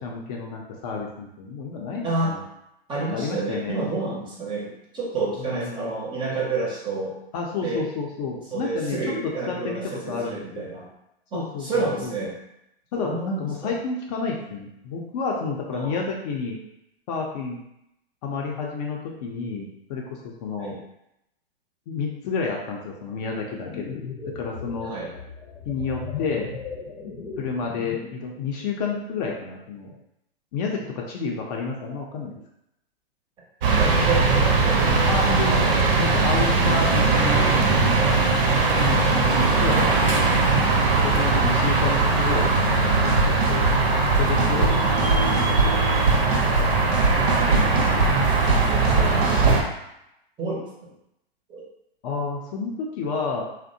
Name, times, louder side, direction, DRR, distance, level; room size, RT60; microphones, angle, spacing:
voice 1, 0.0-2.4 3.1-3.8 5.4-6.0 7.3-9.0 9.5-9.8 10.1-10.7 11.3-12.1 12.9-16.6 17.1-17.6 18.2-20.7 21.9-24.0 24.3-24.9 25.7-26.6 27.4-29.9 30.5-32.4 35.1-35.7 36.0-37.7 38.7-40.3 41.0-43.7 44.2-46.0 46.9-48.5 52.0-53.5, left 4 dB, 40° left, -1 dB, 0.5 m, -30 dB
voice 2, 2.0-2.3 2.9-7.2 7.6-7.8 8.5-10.9 11.3-12.3 13.0-13.7 15.7-16.1 20.6-20.8 24.8-25.1 33.8-35.7 36.3-36.8 38.5-38.8 41.2-41.3 47.3-47.8 50.4-50.9 51.5-51.6, right 3 dB, 15° right, -4 dB, 0.6 m, -30 dB
sound 1, 23.5-28.2, left 5 dB, 85° left, 0.7 m, -37 dB
sound 2, 33.6-49.6, right 3 dB, 65° right, 0.7 m, -20 dB
sound 3, 43.0-43.7 44.1-44.7 45.0-45.7 46.1-46.7 46.9-49.6, right 3 dB, 85° right, 1.0 m, -23 dB
2.6 x 2.1 x 2.6 m, 0.82 s
hypercardioid pair, 115°, 31 cm